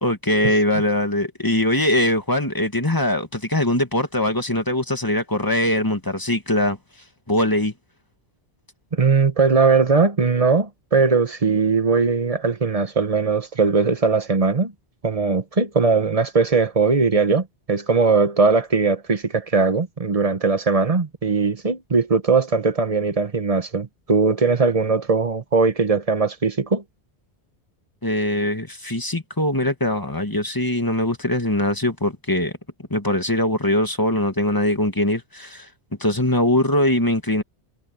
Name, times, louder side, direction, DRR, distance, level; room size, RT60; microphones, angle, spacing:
voice 1, 0.0-6.8 7.3-7.7 28.0-32.5 32.9-35.7 36.0-37.4, left 1 dB, 20° left, 2.0 m, -21 dB
voice 2, 8.9-14.7 15.0-26.8, right 4 dB, 35° right, 1.3 m, -19 dB
omnidirectional pair, 1.1 m